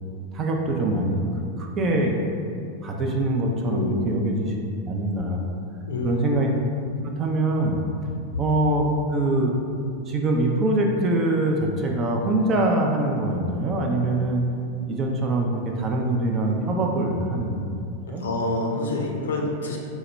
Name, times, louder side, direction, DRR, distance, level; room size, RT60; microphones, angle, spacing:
voice 1, 0.3-1.3 1.6-2.2 2.8-4.5 4.8-5.5 6.0-6.5 7.0-7.8 8.4-9.5 10.1-14.5 14.9-17.8 18.1-18.3, right 2 dB, 30° right, 1 dB, 0.4 m, -23 dB
voice 2, 3.7-4.1 5.9-6.2 18.1-19.8, left 2 dB, 65° left, 0 dB, 0.5 m, -27 dB
4.6 x 2.1 x 3.2 m, 2.5 s
figure-of-eight pair, 90°, 0 cm